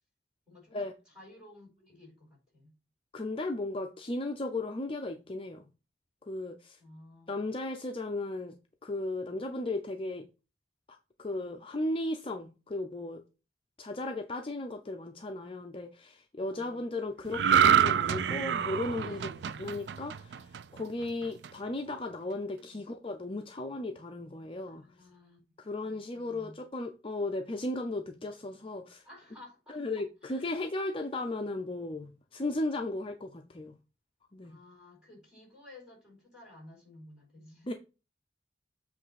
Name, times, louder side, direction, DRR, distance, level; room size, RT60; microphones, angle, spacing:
voice 1, 0.5-2.7 6.8-7.4 16.4-16.8 19.0-19.6 22.5-22.9 24.7-25.4 25.8-26.6 29.0-29.8 30.2-30.6 34.4-37.7, left 1 dB, 5° right, 4.8 m, -54 dB
voice 2, 3.1-5.6 6.3-6.8 7.3-8.5 8.8-10.3 11.2-13.2 13.8-19.3 19.6-20.4 20.7-24.8 25.6-29.0 29.7-33.8 34.3-34.6 37.6-37.7, left 2 dB, 30° left, 0.6 m, -35 dB
sound 1, 17.3-20.8 21.2-21.5, right 8 dB, 75° right, 0.4 m, -26 dB
7.8 x 3.3 x 5.7 m
head